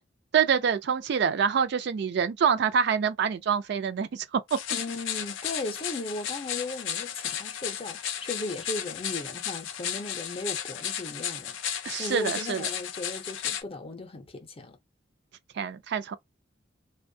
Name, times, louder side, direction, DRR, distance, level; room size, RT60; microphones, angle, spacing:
voice 1, 0.3-4.6 11.8-12.7 15.6-16.2, right 7 dB, 60° right, 0.4 m, -26 dB
sound 1, 4.5-13.6, left 9 dB, 85° left, 0.5 m, -34 dB
voice 2, 4.7-14.8, left 2 dB, 30° left, 0.5 m, -37 dB
2.5 x 2.2 x 2.6 m
head